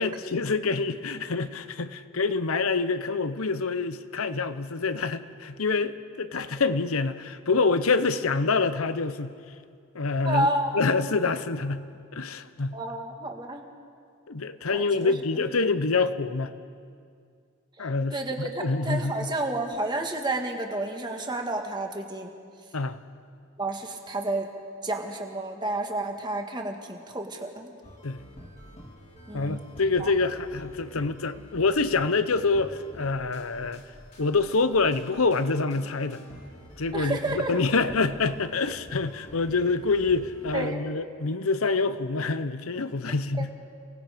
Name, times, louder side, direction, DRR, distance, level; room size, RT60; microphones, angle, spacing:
voice 1, 0.0-9.3 9.9-10.5 10.7-11.8 12.1-12.8 14.3-16.5 17.8-19.3 22.7-23.0 28.0-28.2 29.3-33.8 34.2-36.2 36.8-43.5, left 4 dB, 85° left, 12 dB, 0.9 m, -26 dB
voice 2, 10.2-10.8 12.7-13.6 14.7-15.1 17.8-22.3 23.6-24.5 24.8-27.7 29.3-29.6 30.0-30.1 36.9-37.6 40.5-40.8 43.1-43.2, right 2 dB, 20° right, 3 dB, 1.6 m, -30 dB
sound 1, 27.8-40.8, equal, 30° left, 2.4 m, -48 dB
29.5 x 19.0 x 5.1 m, 2.3 s
head